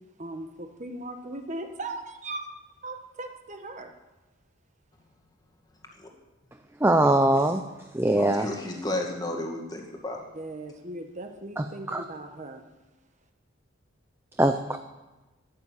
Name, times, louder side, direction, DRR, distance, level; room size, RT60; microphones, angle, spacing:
voice 1, 0.2-2.5 2.8-3.9 10.3-12.6, right 2 dB, 35° right, 5 dB, 1.2 m, -38 dB
voice 2, 6.8-7.6 7.9-8.5 11.6-12.0 14.4-14.8, right 1 dB, 10° right, 7 dB, 0.5 m, -22 dB
voice 3, 8.1-10.2, left 1 dB, 20° left, 1 dB, 1.9 m, -32 dB
12.0 x 11.0 x 7.5 m, 1.1 s
head